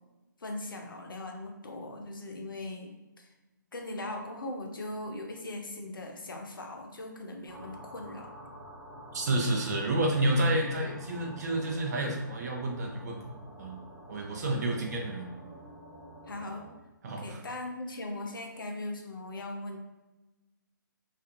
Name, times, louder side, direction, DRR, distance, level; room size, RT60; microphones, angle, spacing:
voice 1, 0.4-3.3 3.7-8.3 14.6-14.8 16.3-16.7 17.1-19.8, left 2 dB, 80° left, 3 dB, 0.5 m, -39 dB
sound 1, 7.5-16.7, right 1 dB, 25° right, 1.1 m, -48 dB
voice 2, 9.1-13.2 13.6-13.8 14.1-15.3 17.0-17.4, right 1 dB, 50° right, 1 dB, 0.6 m, -29 dB
2.5 x 2.3 x 2.4 m, 1.1 s
figure-of-eight pair, 145°, 11 cm